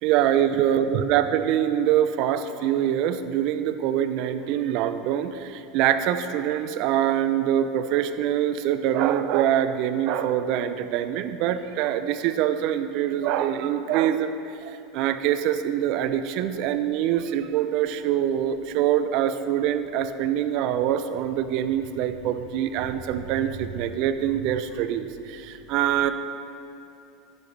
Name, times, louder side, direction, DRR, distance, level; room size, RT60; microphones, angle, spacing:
voice 1, 0.0-14.3 14.6-26.1, right 10 dB, 60° right, 11 dB, 0.5 m, -24 dB
11.0 x 9.5 x 3.3 m, 2.7 s
hypercardioid pair, 90°, 0 cm